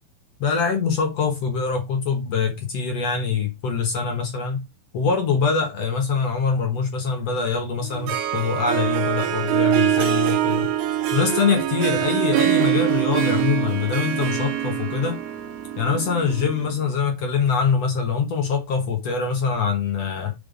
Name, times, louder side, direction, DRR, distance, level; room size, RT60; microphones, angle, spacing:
voice 1, 0.4-4.6 4.9-10.7 11.1-15.2 15.8-20.3, left 5 dB, 60° left, 1.9 m, -24 dB
Harp, 7.8-16.8, right 12 dB, 70° right, 1.9 m, -24 dB
5.5 x 5.4 x 5.1 m
omnidirectional pair, 4.2 m